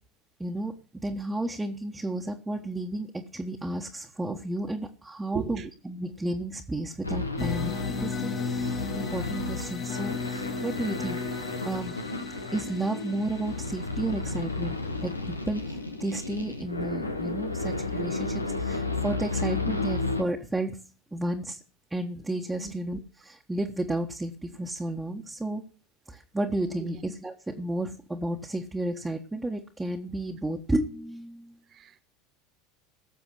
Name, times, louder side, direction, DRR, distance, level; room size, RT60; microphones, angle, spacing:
voice 1, 0.4-12.0 12.5-20.8 21.1-21.6 21.9-25.6 26.1-31.6, right 1 dB, 10° right, 1.5 m, -32 dB
voice 2, 5.3-5.7 22.6-22.7 26.8-27.0 31.7-32.0, right 8 dB, 35° right, 1.8 m, -36 dB
sound 1, 7.0-20.2, left 3 dB, 90° left, 1.2 m, -33 dB
sound 2, 7.4-16.2, left 5 dB, 35° left, 1.8 m, -36 dB
17.5 x 7.0 x 6.3 m
figure-of-eight pair, 75°, 0 cm